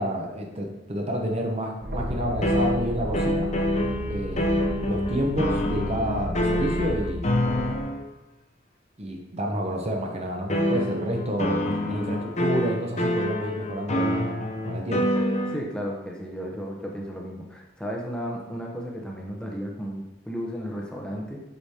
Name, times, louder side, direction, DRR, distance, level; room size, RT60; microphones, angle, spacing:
voice 1, 0.0-3.5 4.1-7.3 9.0-14.2 14.7-15.1, equal, 35° right, 1 dB, 0.8 m, -29 dB
sound 1, 1.8-7.8, equal, 55° right, 1.3 m, -33 dB
sound 2, 2.4-8.0 10.5-15.6, left 1 dB, 35° left, 0.7 m, -26 dB
voice 2, 15.5-21.4, equal, 5° left, -1 dB, 0.8 m, -34 dB
8.2 x 5.0 x 2.8 m, 0.99 s
head